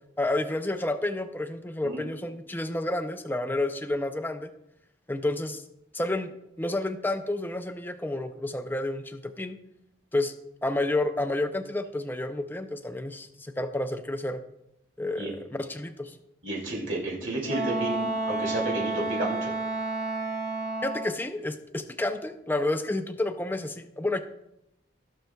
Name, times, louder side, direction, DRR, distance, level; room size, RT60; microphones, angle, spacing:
voice 1, 0.2-4.5 5.1-5.6 5.9-6.3 6.6-9.6 10.1-10.3 10.6-14.4 15.0-16.2 20.8-24.2, left 2 dB, 10° left, 8 dB, 0.4 m, -30 dB
voice 2, 16.4-19.5, right 2 dB, 75° right, -4 dB, 2.5 m, -31 dB
Wind instrument woodwind instrument, 17.5-21.2, right 2 dB, 40° right, 2.3 m, -30 dB
16.0 x 6.5 x 2.3 m, 0.85 s
head